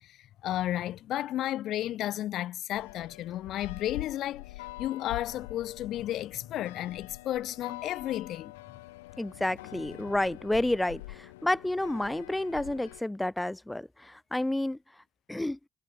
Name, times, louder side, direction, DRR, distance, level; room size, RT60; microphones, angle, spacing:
voice 1, 0.0-8.5, left 13 dB, 70° left, 3.0 m, -33 dB
bell tower(isolated), 2.7-13.0, left 20 dB, 90° left, 2.2 m, -45 dB
voice 2, 9.2-15.0 15.3-15.6, left 1 dB, 10° left, 6.7 m, -30 dB
hypercardioid pair, 45°, 0 cm